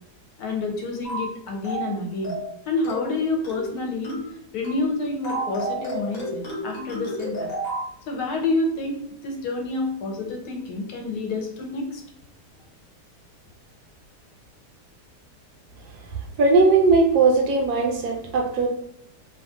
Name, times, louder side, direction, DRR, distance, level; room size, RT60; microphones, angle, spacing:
voice 1, 0.4-2.3 2.7-4.2 4.5-7.5 8.1-12.0, left 3 dB, 75° left, 2 dB, 1.1 m, -28 dB
sound 1, 1.0-1.3 1.6-1.9 2.2-2.5 2.8-3.1 3.4-3.7 4.0-4.3 4.6-4.9 5.2-7.9, right 1 dB, 45° left, 0.8 m, -31 dB
voice 2, 16.4-18.7, right 3 dB, 75° right, 1 dB, 1.0 m, -18 dB
2.8 x 2.3 x 2.5 m, 0.72 s
omnidirectional pair, 1.8 m